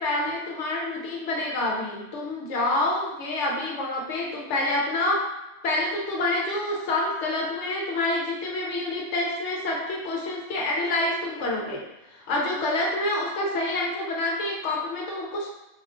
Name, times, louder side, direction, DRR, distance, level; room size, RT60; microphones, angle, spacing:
voice 1, 0.0-5.2 5.6-11.8 12.3-15.5, left 2 dB, 75° left, -2 dB, 0.9 m, -27 dB
4.0 x 2.2 x 2.5 m, 0.95 s
omnidirectional pair, 1.3 m